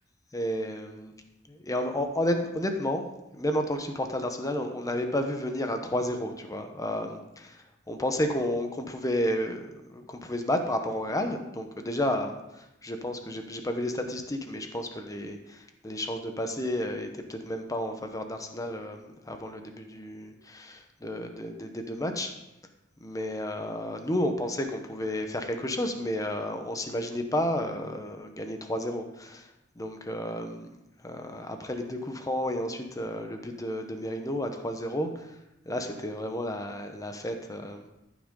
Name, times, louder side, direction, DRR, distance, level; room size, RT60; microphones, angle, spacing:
voice 1, 0.3-1.1 1.5-3.0 3.3-22.3 23.0-30.7 31.0-35.4 35.7-37.9, left 1 dB, 20° left, 5 dB, 1.0 m, -32 dB
14.0 x 6.2 x 3.8 m, 0.89 s
head